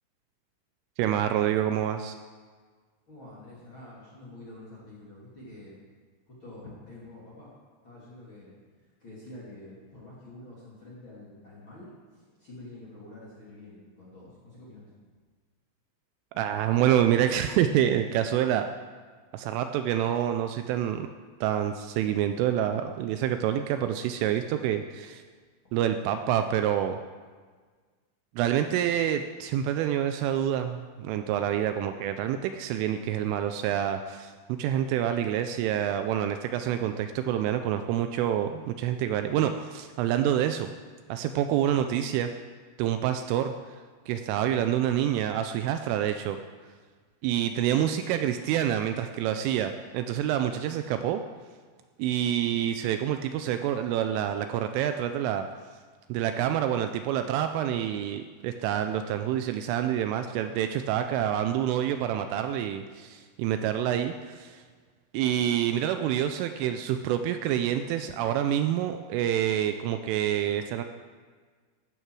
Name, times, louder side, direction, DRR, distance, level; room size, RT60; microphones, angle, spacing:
voice 1, 1.0-2.2 16.4-18.7 19.3-21.1 21.4-25.2 25.7-27.0 28.4-40.7 41.1-42.3 42.8-46.4 47.2-51.2 52.0-55.5 56.1-64.6 65.1-70.8, right 10 dB, 85° right, 8 dB, 2.9 m, -27 dB
voice 2, 3.1-5.8 6.3-7.5 7.8-8.7 9.0-14.9, left 1 dB, 30° left, -7 dB, 2.5 m, -47 dB
15.5 x 12.0 x 4.7 m, 1.5 s
omnidirectional pair, 6.0 m